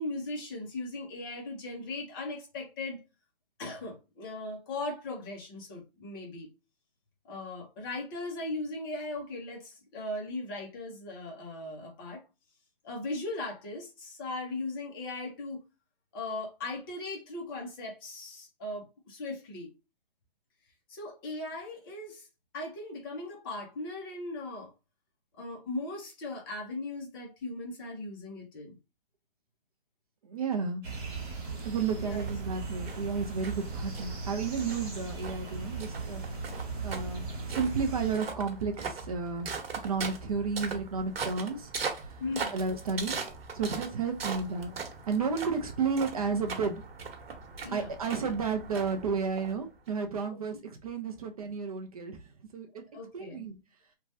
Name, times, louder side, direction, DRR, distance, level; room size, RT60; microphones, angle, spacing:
voice 1, 0.0-3.0 3.6-6.5 7.3-12.2 12.8-15.6 16.1-19.7 20.9-22.3 22.5-24.7 25.4-28.8 32.0-32.3 42.2-42.6 47.6-47.9 50.3-50.4 52.9-53.4, left 2 dB, 25° left, 0.7 m, -38 dB
voice 2, 30.2-30.8 31.6-36.2 36.8-37.2 37.5-39.5 39.8-42.2 42.5-43.2 43.5-44.7 45.1-46.8 47.7-52.3 52.5-52.8 53.1-53.6, right 5 dB, 40° right, 0.5 m, -32 dB
sound 1, 30.8-38.2, right 4 dB, 25° right, 0.9 m, -38 dB
sound 2, 32.2-49.9, right 4 dB, 85° right, 1.0 m, -40 dB
3.0 x 2.2 x 2.6 m
hypercardioid pair, 155°, 29 cm